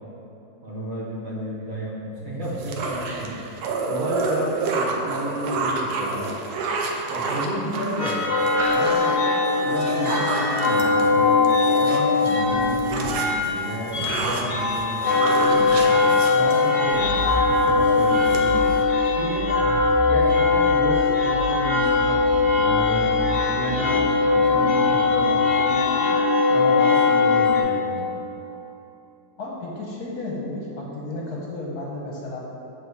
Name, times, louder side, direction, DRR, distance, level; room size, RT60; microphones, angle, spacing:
voice 1, 0.6-3.4 3.8-6.4 7.1-8.2 8.7-11.4 11.7-15.8 16.3-18.7 19.1-19.5 20.0-23.1 23.4-26.1 26.5-28.1, right 1 dB, 50° right, -6 dB, 1.4 m, -31 dB
sound 1, 2.4-12.3 12.6-17.0 17.4-17.7 18.0-18.8, right 3 dB, 65° right, 1.1 m, -29 dB
sound 2, 8.0-27.6, left 4 dB, 45° left, 0.6 m, -20 dB
voice 2, 29.4-32.4, left 2 dB, 60° left, -3 dB, 1.4 m, -33 dB
7.4 x 4.0 x 4.6 m, 2.9 s
omnidirectional pair, 2.0 m